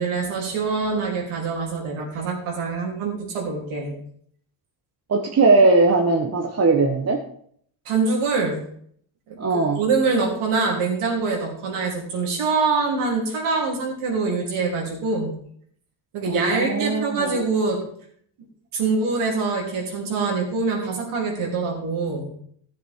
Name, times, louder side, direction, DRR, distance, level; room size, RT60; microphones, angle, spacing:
voice 1, 0.0-3.9 7.9-8.6 9.3-15.3 16.1-17.8 18.7-22.3, right 4 dB, 85° right, -1 dB, 3.6 m, -24 dB
voice 2, 5.1-7.2 9.4-9.8 16.2-17.5, right 3 dB, 30° right, 2 dB, 1.1 m, -19 dB
14.5 x 7.5 x 3.7 m, 0.63 s
cardioid pair, 120°, 49 cm